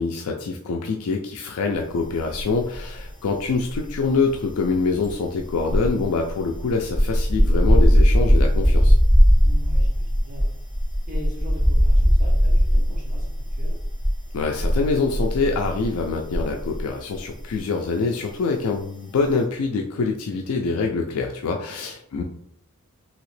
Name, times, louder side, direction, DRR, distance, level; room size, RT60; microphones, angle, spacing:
voice 1, 0.0-9.0 14.3-22.2, left 4 dB, 80° left, 2 dB, 0.4 m, -25 dB
sound 1, 2.3-3.1 3.3-16.9 17.1-17.4, equal, 5° right, 0.7 m, -19 dB
voice 2, 9.4-10.5 11.1-13.8 21.6-21.9, left 1 dB, 35° right, -4 dB, 1.0 m, -41 dB
2.9 x 2.8 x 3.1 m, 0.69 s
head